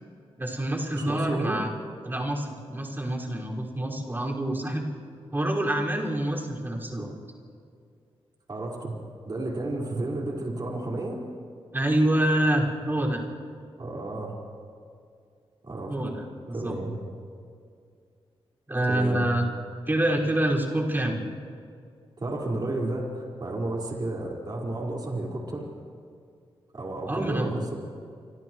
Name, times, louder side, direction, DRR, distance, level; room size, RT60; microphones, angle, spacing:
voice 1, 0.4-1.7 2.0-4.9 5.3-7.1 11.7-13.2 15.9-16.8 18.7-19.5 19.9-21.2 27.1-27.7, right 1 dB, 20° right, -3 dB, 5.6 m, -26 dB
voice 2, 0.9-1.6 8.5-8.9 9.3-11.2 13.8-14.4 15.6-15.9 16.5-17.0 18.9-19.3 22.2-25.7 26.7-27.8, right 2 dB, 40° right, -3 dB, 5.0 m, -32 dB
29.5 x 27.5 x 3.2 m, 2.3 s
cardioid pair, 80°, 10 cm